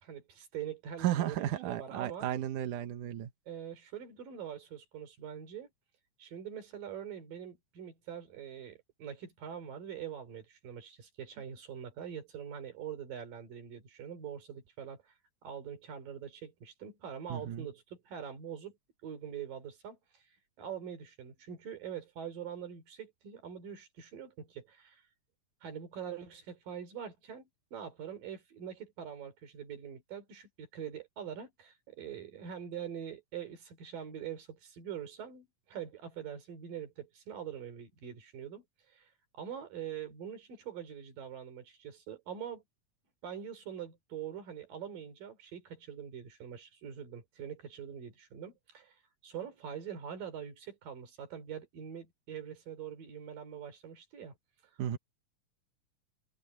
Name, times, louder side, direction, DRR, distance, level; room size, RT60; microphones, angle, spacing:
voice 1, 0.0-2.3 3.5-5.7 6.2-15.2 15.4-18.8 19.0-20.2 20.6-25.0 25.6-39.1 39.4-42.6 43.2-49.0 49.2-54.4, right 8 dB, 90° right, 5.2 m, -44 dB
voice 2, 1.0-3.3 17.3-17.7 54.8-55.0, right 12 dB, 70° right, 2.6 m, -34 dB
omnidirectional pair, 3.8 m